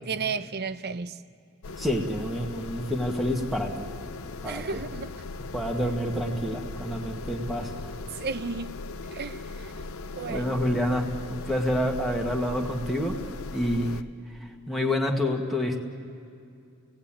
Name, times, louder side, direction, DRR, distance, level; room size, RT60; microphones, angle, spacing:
voice 1, 0.1-1.2 4.4-5.1 8.2-8.8 9.1-9.4 10.2-10.5, right 5 dB, 50° right, 12 dB, 0.6 m, -33 dB
sound 1, 1.6-14.0, left 3 dB, 80° left, 0.7 m, -38 dB
voice 2, 1.8-3.9 4.4-4.8 5.5-7.9 10.3-13.2 13.5-13.9 14.7-15.8, equal, ahead, 0 dB, 1.6 m, -28 dB
30.0 x 17.5 x 8.9 m, 2.4 s
head